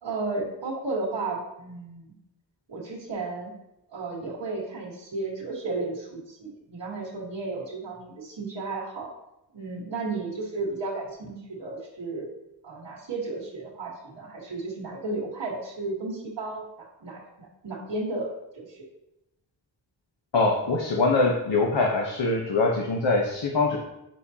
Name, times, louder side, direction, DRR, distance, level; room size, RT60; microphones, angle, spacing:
voice 1, 0.0-2.1 2.7-3.5 3.9-9.1 9.5-12.3 12.6-18.8, right 3 dB, 80° right, -6 dB, 1.7 m, -33 dB
voice 2, 20.3-23.8, left 3 dB, 75° left, 0 dB, 1.1 m, -23 dB
9.1 x 6.5 x 2.8 m, 0.90 s
wide cardioid pair, 75°, 43 cm